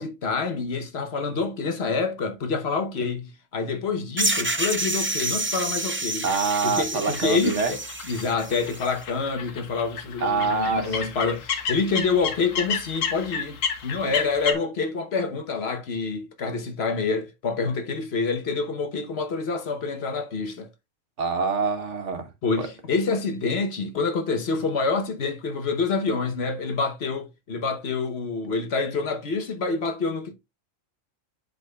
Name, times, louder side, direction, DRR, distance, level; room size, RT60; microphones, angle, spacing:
voice 1, 0.0-6.3 6.6-7.8 8.1-20.7 22.4-30.3, left 4 dB, 55° left, 1.1 m, -27 dB
sound 1, 4.2-8.9, right 2 dB, 20° right, 0.3 m, -28 dB
voice 2, 6.2-7.7 10.2-11.0 21.2-22.3 22.6-22.7, right 4 dB, 65° right, 1.3 m, -25 dB
sound 2, 7.1-14.5, left 6 dB, 80° left, 1.3 m, -32 dB
11.0 x 3.8 x 2.3 m
omnidirectional pair, 1.3 m